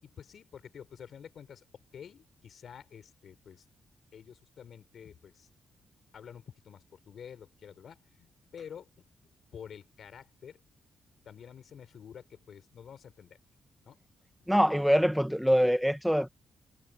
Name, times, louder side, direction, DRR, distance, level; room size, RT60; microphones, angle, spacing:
voice 1, 0.0-3.7 4.1-5.5 6.1-9.1 9.5-10.6 11.2-13.4 13.8-14.0, left 8 dB, 65° left, 6.3 m, -49 dB
voice 2, 14.5-16.3, equal, ahead, 1.1 m, -24 dB
supercardioid pair, 50°, 0 cm